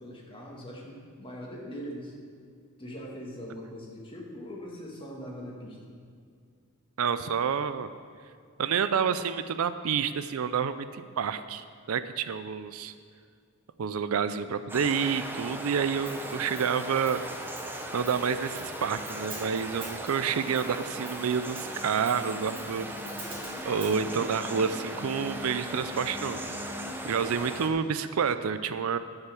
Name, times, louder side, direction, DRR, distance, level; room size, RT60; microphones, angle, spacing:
voice 1, 0.0-2.1 2.8-5.8, equal, 25° left, -2 dB, 1.8 m, -41 dB
voice 2, 7.0-7.9 8.6-12.9 13.8-17.2 17.9-22.9 23.6-26.4 27.0-29.0, right 6 dB, 70° right, 12 dB, 0.4 m, -29 dB
sound 1, 14.7-27.7, right 1 dB, 10° right, 0.7 m, -38 dB
Hi-hat, 16.1-24.0, right 2 dB, 25° right, 2.3 m, -48 dB
sound 2, 20.9-26.9, left 2 dB, 75° left, 2.4 m, -45 dB
11.5 x 5.7 x 7.0 m, 2.2 s
head